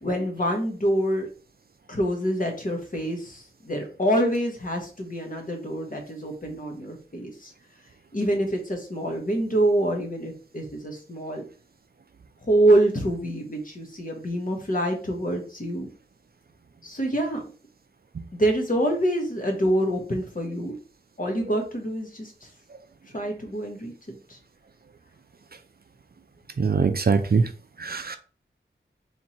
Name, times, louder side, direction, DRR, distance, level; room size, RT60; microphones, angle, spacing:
voice 1, 0.0-1.3 1.9-7.5 8.1-11.4 12.4-15.9 16.8-17.4 18.4-20.8 21.2-22.5 23.1-23.9 24.3-24.4, right 1 dB, 45° left, 1.3 m, -26 dB
voice 2, 26.6-27.5 27.8-28.2, right 5 dB, 50° right, 0.5 m, -22 dB
3.5 x 3.0 x 4.3 m
wide cardioid pair, 80°, 20 cm